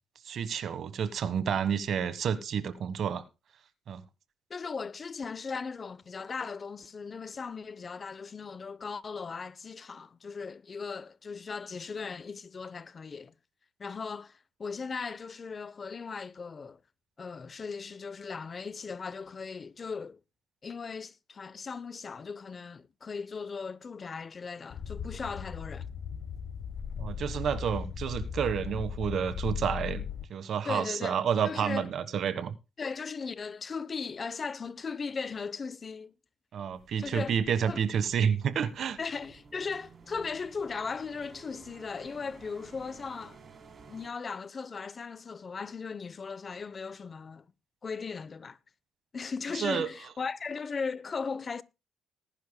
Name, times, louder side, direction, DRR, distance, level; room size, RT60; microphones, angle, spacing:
voice 1, 0.3-3.2 3.9-4.0 27.0-30.0 30.3-32.5 36.5-39.0 49.5-49.9, right 7 dB, 65° right, 1.3 m, -30 dB
voice 2, 4.5-13.3 13.8-16.8 17.2-20.2 20.6-25.9 30.7-31.9 32.8-36.2 37.0-37.3 37.6-37.8 39.0-43.4 43.9-47.5 47.8-48.6 49.1-51.6, left 5 dB, 40° left, 0.7 m, -38 dB
sound 1, 24.7-30.3, left 7 dB, 70° left, 1.1 m, -37 dB
sound 2, 36.7-44.1, right 5 dB, 40° right, 3.5 m, -54 dB
20.0 x 10.5 x 2.2 m
cardioid pair, 90°, 0 cm